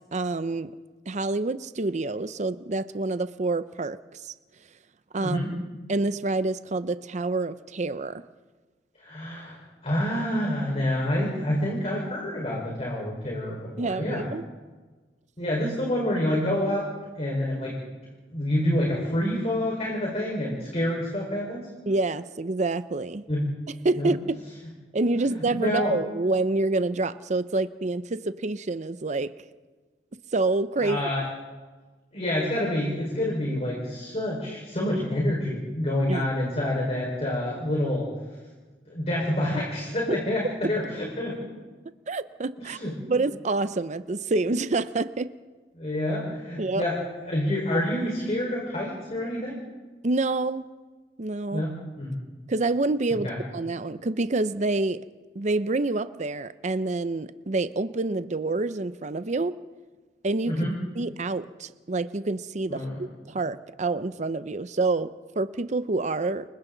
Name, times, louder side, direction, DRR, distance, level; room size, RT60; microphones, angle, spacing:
voice 1, 0.1-0.7 1.1-4.0 4.2-4.3 5.1-5.4 5.9-8.2 13.8-14.4 21.9-23.2 23.8-24.4 24.9-29.3 30.3-31.0 36.1-36.3 40.1-40.2 42.1-42.8 43.1-45.3 46.6-46.8 50.0-50.6 51.2-51.6 52.5-55.0 55.3-59.6 60.2-60.6 61.0-65.1 65.4-66.4, right 3 dB, 40° right, 13 dB, 0.6 m, -27 dB
voice 2, 5.2-5.5 9.0-14.2 15.4-16.8 17.2-17.7 18.3-21.6 23.3-23.5 24.0-24.1 25.1-25.3 25.5-25.9 30.8-31.3 32.1-38.1 38.9-41.3 42.6-42.9 45.7-47.0 47.3-49.6 51.5-52.2 53.2-53.4 60.5-60.7 62.7-63.0, left 1 dB, 35° left, -3 dB, 4.8 m, -27 dB
29.5 x 23.5 x 3.9 m, 1.3 s
head